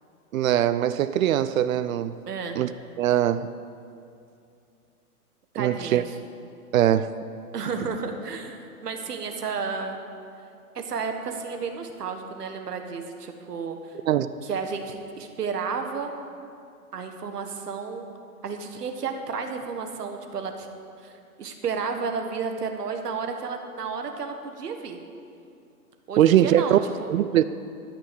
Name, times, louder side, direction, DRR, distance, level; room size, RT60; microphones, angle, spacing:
voice 1, 0.3-2.1 2.6-2.7 3.0-3.5 5.6-6.0 6.7-7.1 14.1-14.3 26.2-26.8 27.1-27.4, right 11 dB, 60° right, 14 dB, 0.5 m, -21 dB
voice 2, 2.3-2.6 5.5-6.1 7.5-10.0 10.7-14.0 14.4-16.1 16.9-18.1 18.4-20.7 21.0-25.0 26.1-27.1, right 5 dB, 85° right, 5 dB, 1.6 m, -32 dB
13.0 x 6.2 x 8.3 m, 2.5 s
hypercardioid pair, 140°, 46 cm